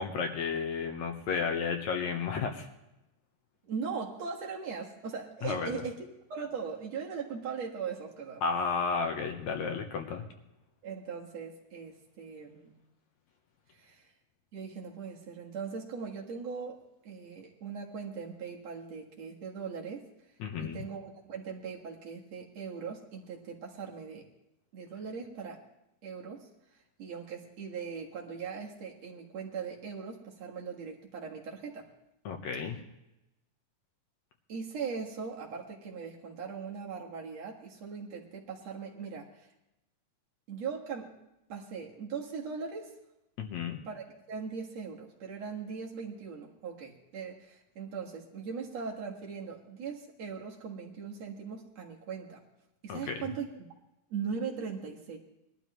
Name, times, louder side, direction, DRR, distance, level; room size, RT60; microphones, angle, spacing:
voice 1, 0.0-2.7 5.4-5.8 8.4-10.2 20.4-20.8 32.3-32.8 43.4-43.8 52.9-53.3, left 5 dB, 65° left, 4 dB, 2.2 m, -32 dB
voice 2, 3.6-8.4 10.8-12.8 13.7-14.1 14.5-20.1 20.6-24.3 24.7-25.6 26.0-26.5 27.0-31.9 34.5-39.5 40.5-41.1 41.5-42.9 43.9-52.4 52.8-53.6 54.1-55.2, right 6 dB, 55° right, -1 dB, 2.7 m, -40 dB
21.0 x 12.5 x 3.1 m, 0.90 s
omnidirectional pair, 3.7 m